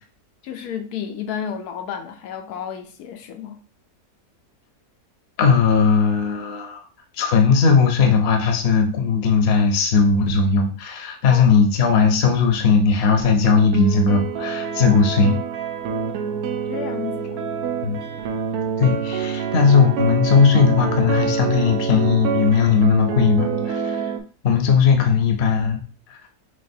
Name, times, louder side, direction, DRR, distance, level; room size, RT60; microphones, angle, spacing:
voice 1, 0.4-3.6 11.3-11.6 16.7-17.5, left 8 dB, 80° left, 1.1 m, -32 dB
voice 2, 5.4-6.8 7.2-15.4 17.8-18.0 18.8-24.1 24.4-25.8 26.1-26.2, left 5 dB, 50° left, 0.9 m, -18 dB
sound 1, 13.4-24.2, right 6 dB, 80° right, 1.1 m, -26 dB
6.4 x 2.4 x 2.7 m
omnidirectional pair, 1.6 m